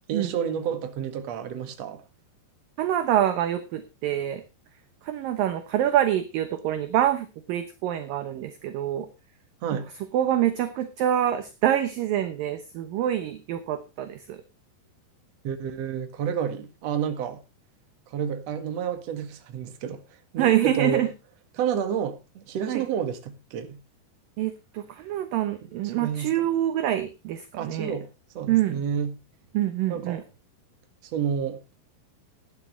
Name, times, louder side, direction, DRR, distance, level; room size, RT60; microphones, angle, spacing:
voice 1, 0.1-2.0 9.6-9.9 15.4-17.4 18.1-20.0 20.3-21.0 21.6-23.8 25.9-26.3 27.6-28.1 28.3-29.2 29.9-30.2 31.1-31.6, right 8 dB, 50° right, 2.4 m, -30 dB
voice 2, 2.8-4.4 5.0-9.1 10.1-14.4 20.4-21.1 22.7-22.9 24.4-28.0 28.5-28.8 29.5-30.2, right 11 dB, 70° right, 2.3 m, -26 dB
16.0 x 11.0 x 3.2 m
omnidirectional pair, 5.0 m